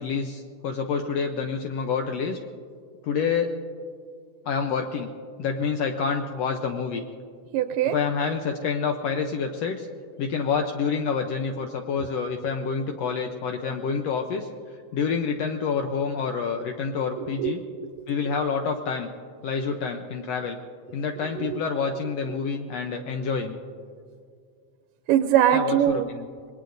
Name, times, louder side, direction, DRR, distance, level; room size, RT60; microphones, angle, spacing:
voice 1, 0.0-2.4 3.0-3.5 4.4-5.1 5.4-7.0 7.9-9.9 10.2-14.5 14.9-17.6 18.1-19.1 19.4-20.6 20.9-23.6 25.5-26.2, left 5 dB, 85° left, 5 dB, 1.4 m, -27 dB
voice 2, 7.5-8.0 17.2-17.9 18.3-18.4 21.2-21.6 22.3-22.4 25.1-26.1, right 11 dB, 85° right, 9 dB, 2.2 m, -23 dB
26.0 x 21.0 x 2.6 m, 2.2 s
omnidirectional pair, 3.8 m